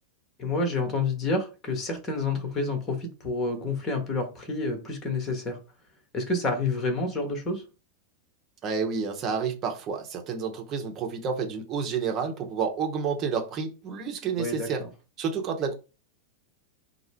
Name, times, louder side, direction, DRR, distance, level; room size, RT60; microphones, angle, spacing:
voice 1, 0.4-5.6 6.1-7.6 14.4-14.9, left 3 dB, 25° left, 1.1 m, -29 dB
voice 2, 8.6-14.8 15.2-15.7, right 6 dB, 30° right, 0.9 m, -30 dB
4.4 x 2.0 x 3.4 m
figure-of-eight pair, 90°, 0 cm